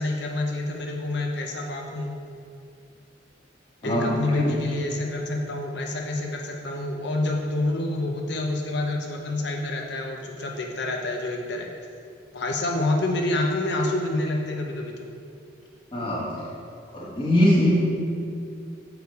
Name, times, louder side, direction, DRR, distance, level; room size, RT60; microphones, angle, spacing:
voice 1, 0.0-2.2 3.8-11.7 12.3-15.1, left 2 dB, 55° left, 1 dB, 0.6 m, -27 dB
voice 2, 3.8-4.5 15.9-16.4 16.9-17.7, left 1 dB, 25° left, -5 dB, 1.3 m, -22 dB
6.6 x 4.9 x 4.7 m, 2.4 s
head